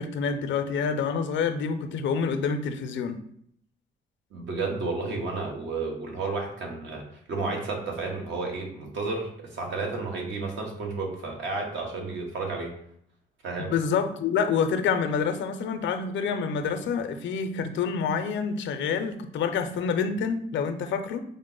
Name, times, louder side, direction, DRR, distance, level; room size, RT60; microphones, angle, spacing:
voice 1, 0.0-3.2 13.6-21.2, left 6 dB, 70° left, 9 dB, 0.5 m, -27 dB
voice 2, 4.3-12.7 13.4-13.7, right 3 dB, 65° right, 1 dB, 1.1 m, -32 dB
5.2 x 2.0 x 3.8 m, 0.68 s
cardioid pair, 90°, 20 cm